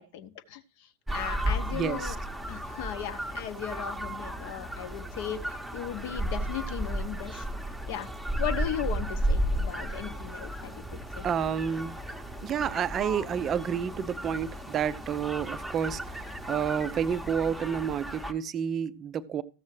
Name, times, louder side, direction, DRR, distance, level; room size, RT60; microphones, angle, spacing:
voice 1, 0.0-2.2 2.5-7.5 7.9-8.1 8.4-10.8 11.2-11.3, left 10 dB, 50° left, 0.7 m, -37 dB
sound 1, 1.1-18.3, right 1 dB, ahead, 0.8 m, -34 dB
voice 2, 1.7-2.2 11.2-12.0 12.4-19.4, right 8 dB, 25° right, 0.4 m, -30 dB
14.0 x 7.3 x 3.2 m
figure-of-eight pair, 90°, 0 cm